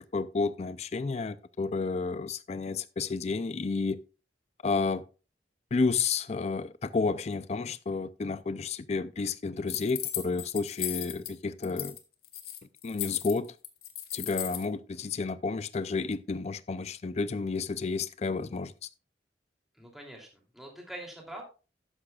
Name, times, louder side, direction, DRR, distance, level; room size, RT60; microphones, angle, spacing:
voice 1, 0.0-4.0 4.6-5.0 5.7-12.0 12.8-13.5 14.1-18.7, left 4 dB, 35° left, 0.4 m, -31 dB
sound 1, 9.7-11.3 11.6-12.0 12.2-14.7, left 12 dB, 55° left, 1.2 m, -36 dB
voice 2, 19.7-21.4, right 1 dB, ahead, 2.9 m, -44 dB
12.5 x 9.8 x 2.4 m
head